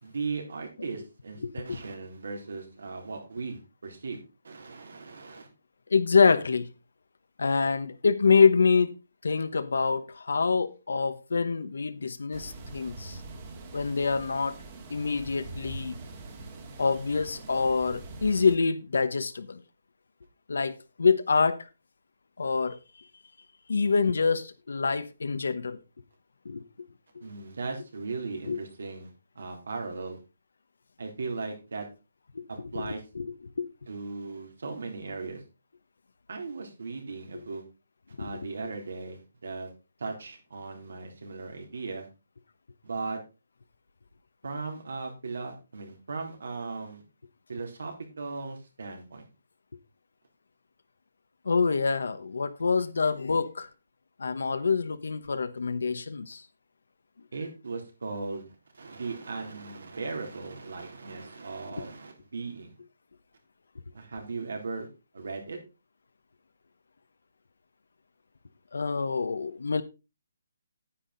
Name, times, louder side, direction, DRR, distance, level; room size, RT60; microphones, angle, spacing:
voice 1, 0.0-5.5 16.0-16.1 27.2-29.1 29.4-30.2 31.0-31.9 32.5-33.0 33.9-35.4 36.3-37.6 38.2-39.7 40.0-42.1 42.8-43.2 44.4-47.0 47.5-49.3 57.3-58.4 58.7-62.7 63.9-64.9 65.1-65.6, right 4 dB, 75° right, 3.7 m, -37 dB
voice 2, 1.4-1.8 5.9-6.7 7.4-8.9 9.2-13.2 13.7-14.6 14.9-16.0 16.8-19.6 20.5-21.7 22.4-22.8 23.7-25.8 26.4-26.6 28.5-28.6 32.3-32.4 32.7-33.3 33.6-33.7 38.2-38.3 51.4-53.7 54.2-56.4 68.7-69.8, left 5 dB, 85° left, 1.0 m, -26 dB
sound 1, 12.3-18.6, right 2 dB, 25° right, 1.6 m, -43 dB
9.8 x 8.4 x 4.0 m
hypercardioid pair, 175°, 0 cm